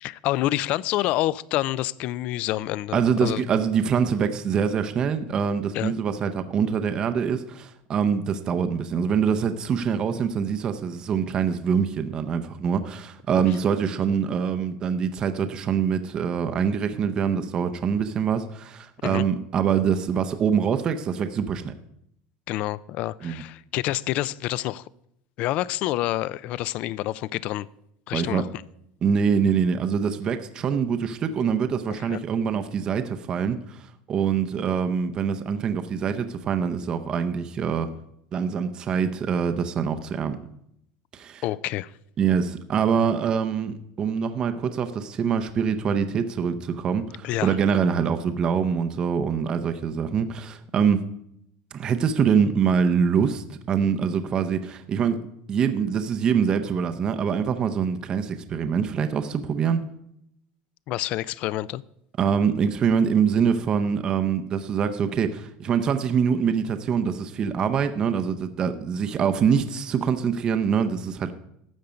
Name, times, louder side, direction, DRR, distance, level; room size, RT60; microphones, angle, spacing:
voice 1, 0.0-3.4 5.7-5.9 19.0-19.2 22.5-24.8 25.4-27.7 28.1-28.5 32.1-32.2 41.4-41.9 47.2-47.5 60.9-61.8, left 15 dB, 40° left, 0.3 m, -27 dB
voice 2, 2.9-21.7 23.2-23.4 28.1-28.4 29.0-33.8 34.1-37.9 38.3-40.4 41.1-41.4 42.2-51.0 51.7-59.8 62.2-71.3, right 7 dB, 20° right, 0.6 m, -24 dB
12.5 x 7.9 x 5.1 m
cardioid pair, 180°, 4 cm